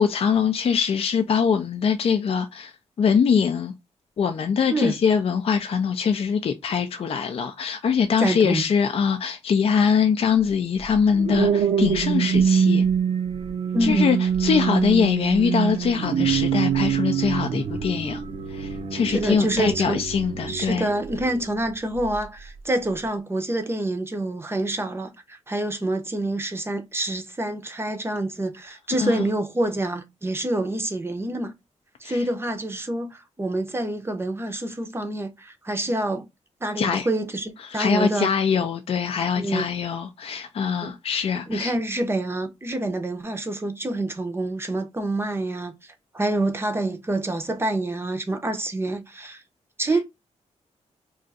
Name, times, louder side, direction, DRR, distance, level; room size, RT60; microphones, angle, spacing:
voice 1, 0.0-2.7 3.0-3.7 4.2-12.8 13.8-18.2 18.5-20.9 29.0-29.1 32.0-32.2 36.8-37.1 37.6-41.7, left 6 dB, 55° left, 0.4 m, -23 dB
voice 2, 8.2-8.6 13.7-14.1 19.1-20.0 20.5-31.5 32.0-36.2 36.6-38.3 39.3-39.6 40.8-40.9 41.5-45.7 46.1-49.4 49.8-50.0, right 1 dB, 20° right, 0.6 m, -27 dB
sound 1, 10.8-21.4 21.9-22.2, right 7 dB, 60° right, 0.6 m, -24 dB
2.5 x 2.4 x 3.9 m
wide cardioid pair, 110°, 12 cm